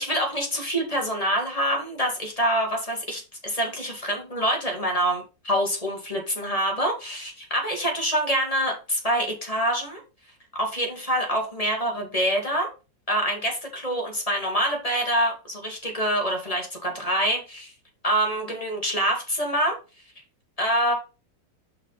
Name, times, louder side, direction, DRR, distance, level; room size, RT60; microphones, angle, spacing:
voice 1, 0.0-10.0 10.6-12.7 13.1-17.7 18.0-19.8 20.6-20.9, equal, 20° left, 1 dB, 1.9 m, -26 dB
5.5 x 4.8 x 5.5 m, 0.30 s
omnidirectional pair, 2.0 m